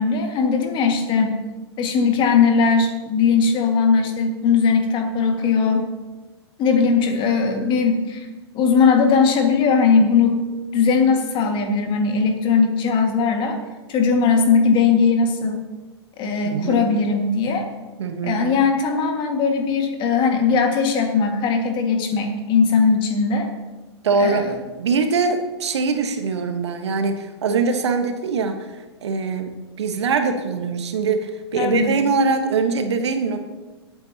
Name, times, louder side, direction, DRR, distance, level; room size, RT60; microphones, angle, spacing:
voice 1, 0.0-1.4 1.8-5.9 6.6-8.3 8.5-10.4 10.7-13.6 13.9-15.6 16.2-17.7 18.2-23.5 24.2-24.6 31.6-31.9, left 5 dB, 35° left, 4 dB, 1.9 m, -19 dB
voice 2, 16.4-16.8 18.0-18.4 24.0-24.5 24.8-28.7 29.0-29.5 29.8-33.4, right 4 dB, 75° right, 6 dB, 1.4 m, -22 dB
24.0 x 8.8 x 2.9 m, 1.2 s
hypercardioid pair, 110°, 14 cm